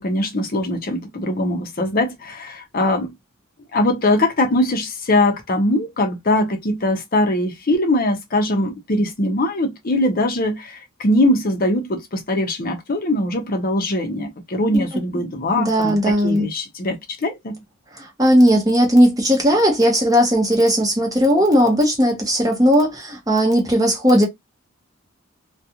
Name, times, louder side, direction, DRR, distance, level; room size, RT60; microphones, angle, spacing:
voice 1, 0.0-3.1 3.7-17.6, left 1 dB, 45° left, 0.6 m, -21 dB
voice 2, 15.6-16.5 18.0-24.3, equal, 15° right, 0.8 m, -17 dB
2.4 x 2.3 x 2.7 m
head